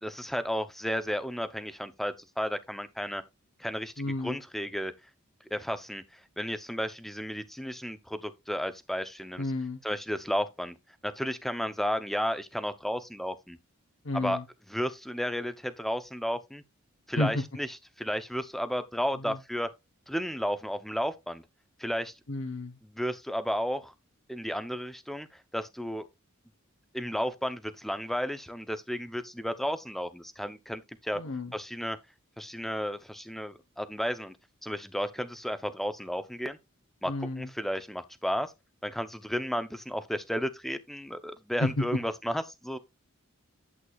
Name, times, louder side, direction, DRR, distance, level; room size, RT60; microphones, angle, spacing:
voice 1, 0.0-3.2 3.6-4.9 5.5-9.5 9.8-10.7 11.0-13.6 14.1-14.4 14.7-16.6 17.1-19.7 20.1-21.4 21.8-22.1 22.8-23.9 24.3-26.1 26.9-31.2 31.5-32.0 32.4-34.4 34.6-36.6 37.0-38.5 38.8-42.8, equal, ahead, 0.6 m, -33 dB
voice 2, 4.0-4.4 9.4-9.8 14.0-14.4 17.2-17.4 19.2-19.4 22.3-22.8 31.1-31.5 37.1-37.5 41.6-41.8, left 2 dB, 60° left, 0.9 m, -31 dB
11.0 x 8.1 x 2.4 m
head